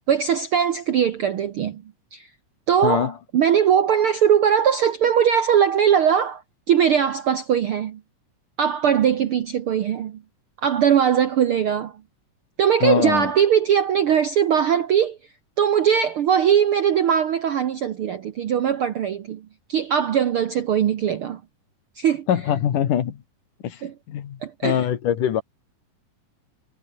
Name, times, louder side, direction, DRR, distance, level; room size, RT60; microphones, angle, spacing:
voice 1, 0.1-1.8 2.1-2.3 2.7-6.4 6.7-8.0 8.6-10.2 10.6-12.0 12.6-15.2 15.6-21.4 21.9-22.3 23.8-23.9 24.4-24.9, right 8 dB, 65° right, 1.3 m, -20 dB
voice 2, 2.8-3.1 12.8-13.3 22.3-23.2 23.6-23.8 24.1-25.4, left 10 dB, 70° left, 3.4 m, -23 dB
omnidirectional pair, 3.8 m